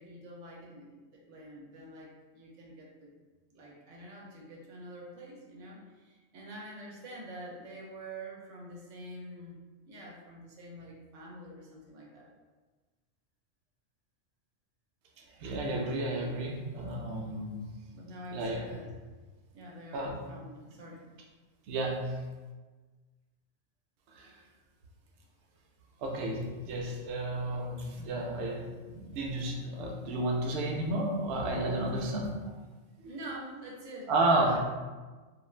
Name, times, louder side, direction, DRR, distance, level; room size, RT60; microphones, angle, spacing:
voice 1, 0.0-3.1 3.5-9.6 9.8-12.3 17.9-18.9 19.5-21.0 33.0-34.6, right 1 dB, 90° right, -3 dB, 1.0 m, -46 dB
voice 2, 15.4-17.6 18.3-18.6 19.9-20.2 21.7-22.2 24.1-24.3 26.0-32.5 34.1-34.6, right 2 dB, 65° right, -1 dB, 0.7 m, -32 dB
2.5 x 2.3 x 3.1 m, 1.3 s
omnidirectional pair, 1.3 m